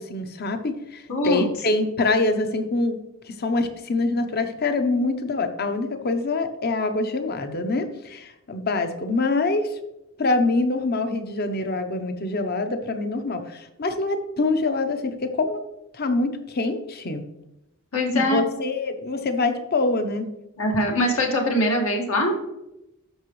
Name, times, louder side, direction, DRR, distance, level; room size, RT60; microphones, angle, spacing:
voice 1, 0.0-3.0 3.2-9.8 10.2-15.6 15.9-17.2 18.1-20.3, left 3 dB, 50° left, 7 dB, 0.9 m, -25 dB
voice 2, 1.1-1.4 17.9-18.5 20.6-22.3, left 1 dB, 75° left, 0 dB, 2.0 m, -22 dB
13.0 x 5.8 x 3.2 m, 0.89 s
head